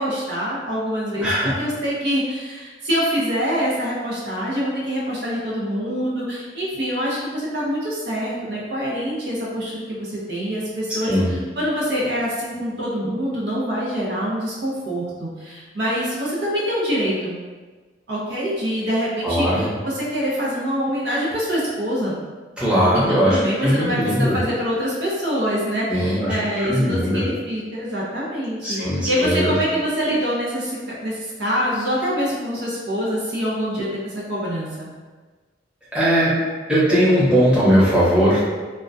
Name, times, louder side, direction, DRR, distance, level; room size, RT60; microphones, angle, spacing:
voice 1, 0.0-1.3 1.6-17.3 18.1-22.2 22.9-34.9, equal, 65° right, -6 dB, 0.6 m, -25 dB
voice 2, 1.2-1.5 10.9-11.3 19.2-19.7 22.6-24.4 25.9-27.2 28.6-29.5 35.9-36.3 36.7-38.4, equal, 5° right, -11 dB, 0.8 m, -19 dB
2.2 x 2.1 x 2.5 m, 1.3 s
head